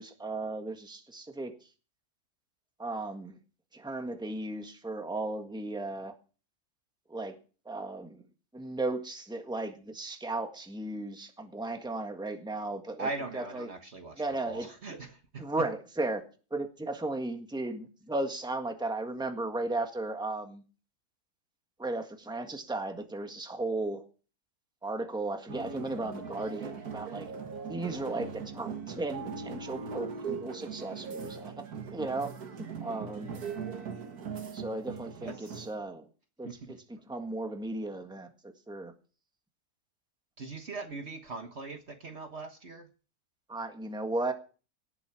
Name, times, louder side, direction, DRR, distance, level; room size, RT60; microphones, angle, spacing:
voice 1, 0.0-1.5 2.8-3.3 3.7-6.1 7.1-7.4 7.6-8.2 8.5-13.1 13.3-13.7 14.2-14.7 15.4-16.2 16.5-20.6 21.8-24.0 24.8-27.3 27.7-31.5 31.9-32.3 32.6-33.4 34.5-36.1 36.4-36.8 37.1-38.3 38.7-38.9 43.5-44.3, right 2 dB, 5° right, 6 dB, 1.6 m, -35 dB
voice 2, 13.0-15.7 35.2-35.5 36.4-36.7 40.4-42.9, right 3 dB, 45° right, 6 dB, 1.5 m, -40 dB
sound 1, 25.5-35.8, right 5 dB, 75° right, 1.9 m, -40 dB
17.5 x 8.1 x 6.0 m, 0.36 s
omnidirectional pair, 1.6 m